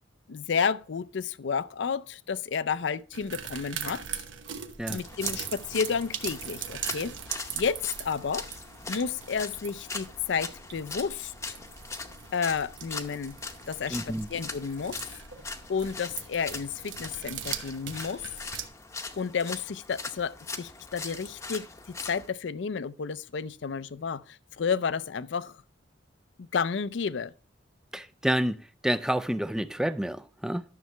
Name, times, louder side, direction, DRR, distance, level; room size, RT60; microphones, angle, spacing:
voice 1, 0.3-4.2 4.9-7.1 7.5-8.5 8.9-11.6 12.3-13.4 13.7-15.1 15.7-18.2 19.2-25.6 26.5-27.3, left 6 dB, 70° left, 0.5 m, -31 dB
sound 1, 3.1-18.7, right 8 dB, 85° right, 1.0 m, -40 dB
sound 2, 5.0-22.3, left 3 dB, 15° left, 0.7 m, -41 dB
voice 2, 13.9-14.3 27.9-30.6, equal, 5° right, 0.4 m, -29 dB
12.0 x 6.7 x 3.3 m
head